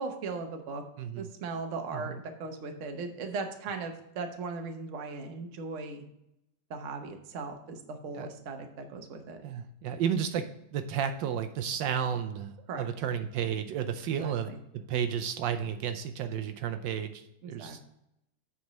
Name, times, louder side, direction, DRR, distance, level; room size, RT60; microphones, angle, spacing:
voice 1, 0.0-0.8 1.2-6.1 6.7-9.4 12.7-12.9 14.2-14.6 17.4-17.8, right 4 dB, 50° right, 5 dB, 1.1 m, -38 dB
voice 2, 9.4-17.8, right 8 dB, 80° right, 8 dB, 1.2 m, -32 dB
7.8 x 4.2 x 6.0 m, 0.83 s
omnidirectional pair, 2.0 m